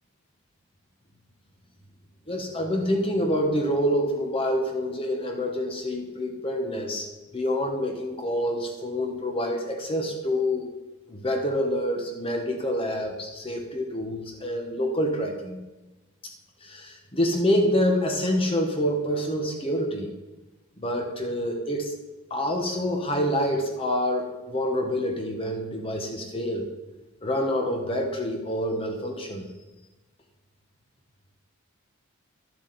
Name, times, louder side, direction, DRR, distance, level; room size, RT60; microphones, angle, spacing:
voice 1, 2.3-7.1 7.3-10.7 11.1-15.6 16.6-20.1 20.8-21.9 22.3-26.6 27.2-29.5, equal, 25° left, 2 dB, 1.1 m, -27 dB
11.5 x 7.6 x 4.1 m, 1.1 s
head